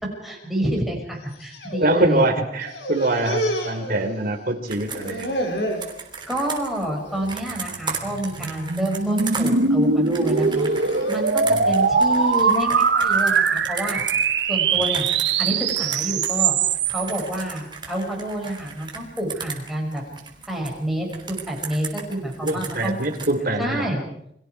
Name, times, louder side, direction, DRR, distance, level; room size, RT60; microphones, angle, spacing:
voice 1, 0.2-2.2 6.3-10.7 11.1-14.0 14.5-15.1 15.4-16.6 16.9-20.0 20.5-22.9 23.6-24.0, right 1 dB, ahead, -1 dB, 6.5 m, -28 dB
sound 1, 1.2-2.3 2.6-4.5 4.8-5.9 6.4-6.8 7.1-7.3 8.1-8.5 9.0-9.4 10.2-12.4, equal, 70° left, 4.8 m, -31 dB
voice 2, 1.8-5.4 11.5-11.7 22.4-23.9, right 2 dB, 55° right, 4 dB, 3.5 m, -24 dB
Computer keyboard, 4.7-16.4 16.7-20.7 21.1-23.3, right 6 dB, 25° right, 3.4 m, -36 dB
sound 2, 7.5-17.2, right 5 dB, 75° right, 1.2 m, -21 dB
30.0 x 22.5 x 4.8 m, 0.74 s
head